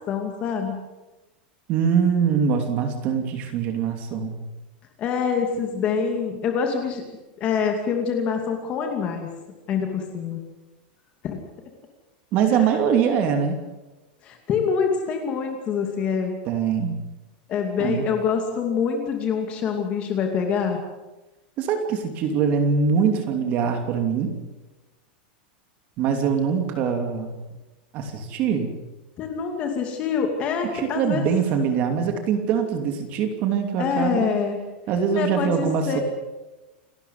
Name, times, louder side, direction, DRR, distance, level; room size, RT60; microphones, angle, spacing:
voice 1, 0.1-0.8 5.0-7.0 7.4-9.3 9.7-10.4 11.2-11.4 12.5-12.7 14.2-16.3 17.5-20.8 29.2-31.3 33.8-34.6 35.1-36.0, left 6 dB, 25° left, 4 dB, 2.5 m, -25 dB
voice 2, 1.7-4.3 12.3-13.6 16.5-17.1 17.8-18.0 21.6-24.4 26.0-27.3 27.9-28.7 30.7-34.3 34.9-36.0, right 6 dB, 30° right, 6 dB, 2.9 m, -23 dB
29.0 x 13.0 x 9.5 m, 1.1 s
supercardioid pair, 180°, 5 cm